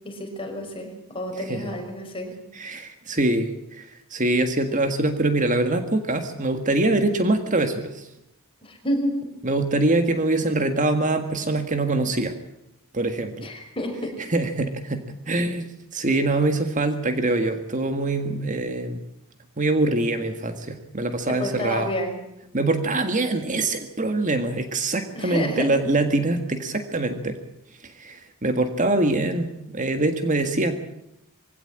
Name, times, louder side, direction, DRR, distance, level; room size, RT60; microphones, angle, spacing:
voice 1, 0.0-2.3 8.6-9.2 13.4-14.2 21.3-22.1 25.1-25.7, equal, 25° left, 2 dB, 5.6 m, -29 dB
voice 2, 2.5-8.1 9.4-12.3 12.9-13.5 14.3-19.0 19.6-21.9 22.5-27.4 27.8-30.7, right 2 dB, 35° right, 7 dB, 1.7 m, -24 dB
23.0 x 17.0 x 8.7 m, 0.82 s
head